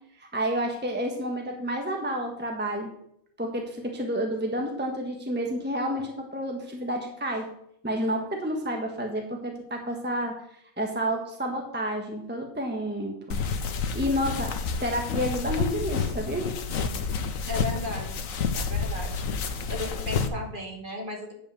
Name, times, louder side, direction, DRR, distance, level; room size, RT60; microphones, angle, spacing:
voice 1, 0.2-2.9 3.4-7.5 7.8-10.4 10.8-13.4 13.9-16.5, equal, 10° right, 2 dB, 1.2 m, -30 dB
sound 1, 13.3-20.3, left 5 dB, 70° left, 1.3 m, -29 dB
voice 2, 17.5-18.2 18.6-19.1 19.7-21.3, left 2 dB, 35° right, 1 dB, 2.1 m, -35 dB
9.5 x 5.5 x 7.1 m, 0.72 s
omnidirectional pair, 1.5 m